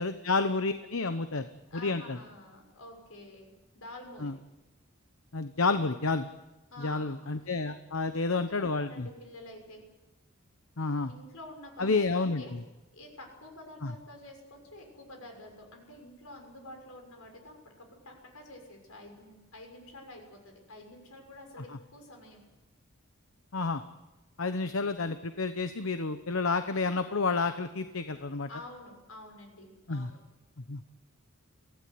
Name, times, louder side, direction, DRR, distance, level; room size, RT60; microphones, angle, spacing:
voice 1, 0.0-1.5 1.7-2.2 4.2-4.3 5.3-6.3 6.8-9.1 10.8-11.1 11.8-12.6 13.8-13.9 23.5-23.8 24.4-28.5 29.9-30.1 30.7-30.8, left 3 dB, 75° left, 9 dB, 1.0 m, -30 dB
voice 2, 1.7-3.5 3.7-4.3 6.7-7.2 7.4-7.5 8.3-9.8 11.1-12.5 12.9-22.4 28.5-30.2, left 1 dB, 90° left, 3 dB, 6.5 m, -49 dB
23.5 x 16.0 x 9.5 m, 1.1 s
head